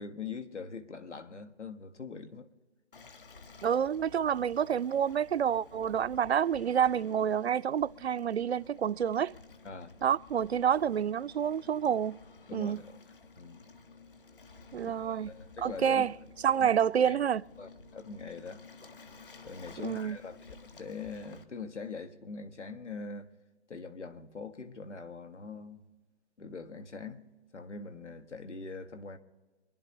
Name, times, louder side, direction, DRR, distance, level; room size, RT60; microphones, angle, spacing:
voice 1, 0.0-2.5 9.6-9.9 12.5-13.0 13.4-13.6 14.8-16.0 16.6-16.7 17.0-17.2 17.6-18.6 19.4-23.3 23.7-25.8 26.4-27.2 27.5-29.2, left 4 dB, 85° left, 1.6 m, -43 dB
Waves surf, 2.9-21.4, left 4 dB, 50° left, 1.4 m, -53 dB
voice 2, 3.6-9.3 10.0-12.2 12.5-12.8 14.7-15.3 15.6-16.1 16.4-17.4 19.8-20.2, right 8 dB, 65° right, 0.5 m, -28 dB
27.0 x 11.0 x 3.0 m
hypercardioid pair, 170°, 34 cm